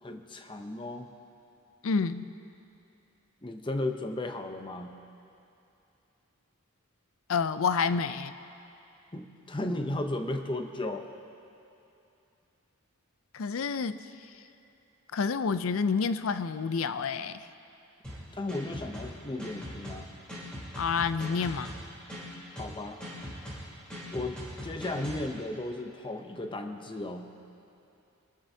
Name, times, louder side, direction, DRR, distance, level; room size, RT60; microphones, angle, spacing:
voice 1, 0.0-1.1 3.4-5.0 9.1-11.1 18.3-20.1 22.5-23.0 24.1-27.3, left 2 dB, 20° left, 6 dB, 0.7 m, -35 dB
voice 2, 1.8-2.2 7.3-8.3 13.3-14.0 15.1-17.5 20.8-21.7, left 5 dB, 65° left, 13 dB, 0.5 m, -28 dB
sound 1, 18.0-25.3, equal, 5° left, 3.6 m, -41 dB
24.5 x 13.0 x 2.8 m, 2.8 s
head